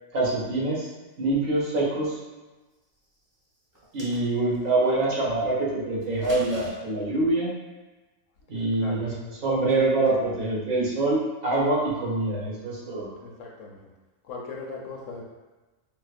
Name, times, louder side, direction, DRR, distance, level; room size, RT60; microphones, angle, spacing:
voice 1, 0.1-0.9 1.2-2.2 3.9-7.5 8.5-9.1 9.4-13.1, right 2 dB, 75° right, -6 dB, 1.4 m, -25 dB
sound 1, 3.7-4.6 6.0-6.7, equal, 20° right, 0.9 m, -41 dB
voice 2, 13.2-13.9 14.2-15.2, left 3 dB, 70° left, -1 dB, 0.9 m, -38 dB
4.9 x 2.1 x 2.4 m, 1.2 s
omnidirectional pair, 1.4 m